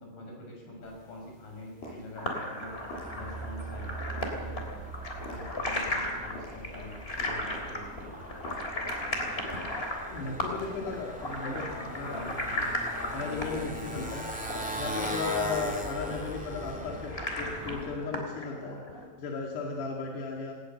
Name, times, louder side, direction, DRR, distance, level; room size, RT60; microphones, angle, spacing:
voice 1, 0.0-2.7 3.1-4.9 5.2-8.1 11.4-12.7 16.6-16.9, left 2 dB, 55° left, 0 dB, 7.8 m, -45 dB
sound 1, 0.8-16.2, equal, 70° left, 8.7 m, -50 dB
sound 2, 2.1-19.0, left 1 dB, 15° left, 2.9 m, -36 dB
Motorcycle, 2.7-18.1, right 1 dB, 5° right, 1.7 m, -40 dB
voice 2, 10.1-12.2 13.1-14.3 14.8-18.8 19.2-20.5, left 4 dB, 90° left, -1 dB, 4.4 m, -35 dB
19.0 x 18.5 x 7.7 m, 1.2 s
omnidirectional pair, 4.6 m